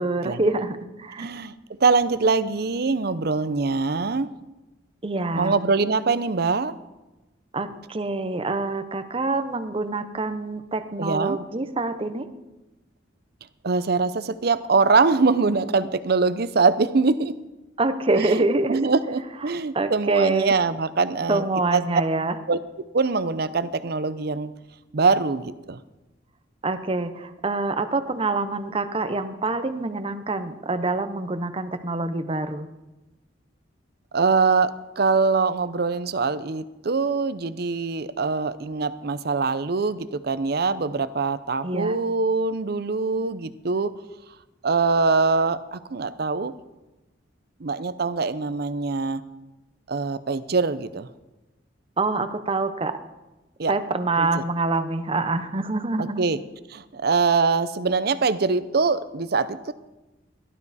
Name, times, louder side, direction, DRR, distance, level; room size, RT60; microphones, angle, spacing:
voice 1, 0.0-1.3 5.0-5.6 7.5-12.3 17.8-18.8 19.5-20.5 21.3-22.3 26.6-32.7 41.6-42.0 52.0-53.0 53.7-56.2, right 3 dB, 30° right, 10 dB, 0.9 m, -26 dB
voice 2, 1.2-1.5 1.8-4.3 5.3-6.7 11.0-11.4 13.6-17.3 18.1-21.4 21.7-21.8 22.5-22.6 22.9-24.5 24.9-25.8 34.1-43.9 44.6-46.5 47.6-49.2 49.9-51.1 53.6-53.7 54.2-54.4 56.0-56.4 56.7-59.7, right 4 dB, 60° right, 14 dB, 0.7 m, -23 dB
16.5 x 12.0 x 4.2 m, 1.0 s
head